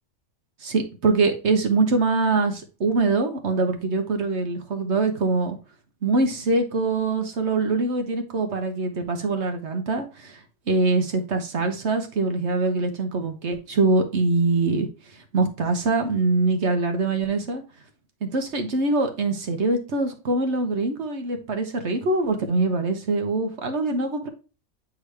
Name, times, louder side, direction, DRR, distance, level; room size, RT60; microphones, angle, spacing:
voice 1, 0.6-5.6 6.0-10.4 10.7-14.9 15.3-17.6 18.2-24.3, right 3 dB, 55° right, 6 dB, 1.2 m, -23 dB
8.0 x 3.7 x 3.3 m, 0.33 s
omnidirectional pair, 1.5 m